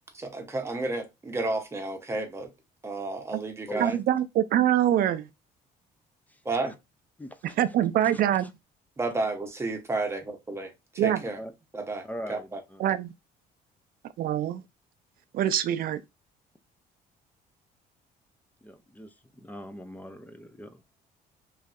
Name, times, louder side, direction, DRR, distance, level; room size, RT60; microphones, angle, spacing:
voice 1, 0.1-2.5 2.8-4.0 6.4-6.7 9.0-11.4 11.7-12.6, right 2 dB, 15° right, 0.8 m, -32 dB
voice 2, 3.8-5.3 7.6-8.5 11.0-11.2 12.8-13.1 14.2-14.6 15.3-16.0, right 11 dB, 60° right, 0.4 m, -24 dB
voice 3, 6.3-6.7 7.2-7.6 8.1-8.5 11.2-11.5 12.0-12.8 18.6-20.8, equal, 10° left, 0.4 m, -42 dB
3.2 x 2.7 x 2.3 m
cardioid pair, 110°, 17 cm